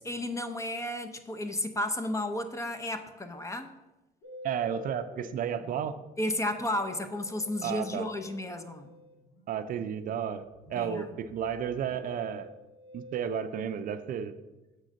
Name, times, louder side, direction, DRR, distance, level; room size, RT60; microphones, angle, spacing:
voice 1, 0.0-3.7 6.2-8.9 10.7-11.1, left 1 dB, 20° left, 8 dB, 0.6 m, -33 dB
Musical instrument, 4.2-13.3, left 1 dB, 70° left, 1.8 m, -50 dB
voice 2, 4.4-6.0 7.6-8.1 9.5-12.5 12.9-14.3, right 8 dB, 55° right, 11 dB, 0.5 m, -32 dB
6.6 x 3.8 x 6.2 m, 1.1 s
cardioid pair, 110°, 17 cm